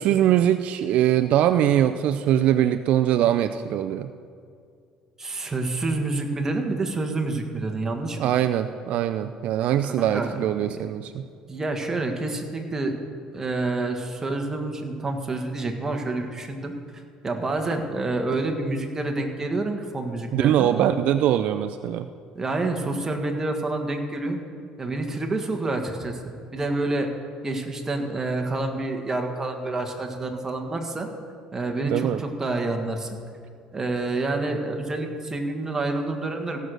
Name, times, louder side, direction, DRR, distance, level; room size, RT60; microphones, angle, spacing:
voice 1, 0.0-4.1 8.2-11.2 20.3-22.1 31.8-32.2, right 11 dB, 65° right, 10 dB, 0.4 m, -22 dB
voice 2, 5.2-8.3 10.0-10.8 11.5-13.0 13.3-16.7 17.2-21.0 22.3-24.4 24.8-27.1 27.4-31.1 31.5-33.2 33.7-36.6, right 2 dB, 20° right, 3 dB, 1.5 m, -28 dB
16.0 x 6.6 x 6.3 m, 2.3 s
cardioid pair, 110°, 2 cm